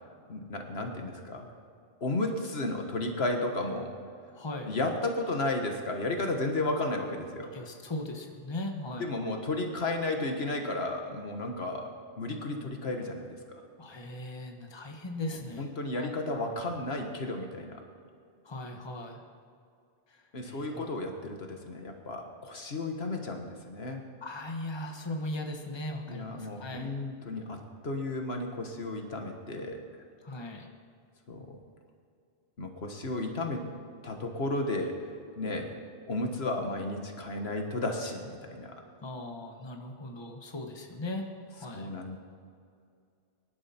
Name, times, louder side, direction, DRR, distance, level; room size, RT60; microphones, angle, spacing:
voice 1, 0.3-1.5 2.0-3.9 4.6-7.5 9.0-11.9 12.2-13.6 15.3-17.8 20.3-24.0 26.1-29.8 31.3-31.6 32.6-33.6 34.0-35.0 35.4-35.8 36.1-38.8 41.7-42.2, left 2 dB, 75° left, 4 dB, 1.7 m, -33 dB
voice 2, 4.3-4.7 7.5-9.3 13.8-15.7 15.9-16.1 18.4-19.2 20.4-20.8 24.2-26.9 30.2-30.7 39.0-41.9, left 1 dB, 25° left, 2 dB, 1.3 m, -38 dB
23.0 x 11.0 x 4.4 m, 2.3 s
omnidirectional pair, 1.1 m